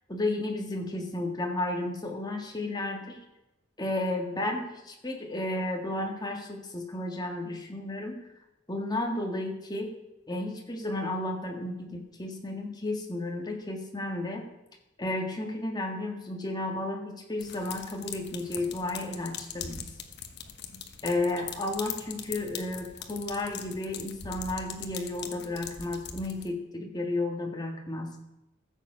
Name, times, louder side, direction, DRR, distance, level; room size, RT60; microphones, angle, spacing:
voice 1, 0.1-3.2 3.8-8.3 8.7-9.9 10.3-14.4 15.0-19.9 21.0-28.1, left 2 dB, 20° left, 2 dB, 1.9 m, -33 dB
sound 1, 17.4-26.5, left 8 dB, 55° left, 1.2 m, -41 dB
15.0 x 7.3 x 5.7 m, 0.95 s
head